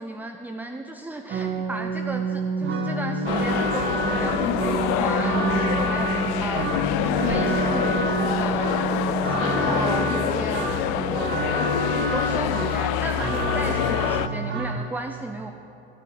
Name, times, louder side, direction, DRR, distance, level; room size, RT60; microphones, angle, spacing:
voice 1, 0.0-11.5 11.9-15.5, right 2 dB, 5° right, 4 dB, 0.6 m, -34 dB
sound 1, 1.3-14.8, right 3 dB, 40° right, 1.5 m, -27 dB
sound 2, 3.3-14.3, left 13 dB, 65° left, 0.5 m, -26 dB
sound 3, 3.8-11.8, left 2 dB, 20° left, 1.7 m, -36 dB
13.0 x 6.5 x 7.5 m, 2.8 s
hypercardioid pair, 80°, 29 cm